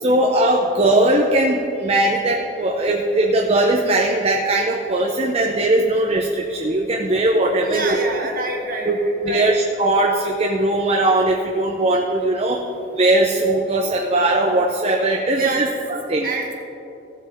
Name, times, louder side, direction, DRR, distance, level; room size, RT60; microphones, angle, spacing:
voice 1, 0.0-8.0 8.8-9.0 9.2-12.6 12.9-15.7 16.1-16.3, right 1 dB, 35° right, 0 dB, 0.6 m, -19 dB
voice 2, 7.6-9.5 15.4-15.7 16.2-16.5, right 2 dB, 50° right, 1 dB, 1.5 m, -27 dB
16.5 x 7.5 x 3.5 m, 2.9 s
head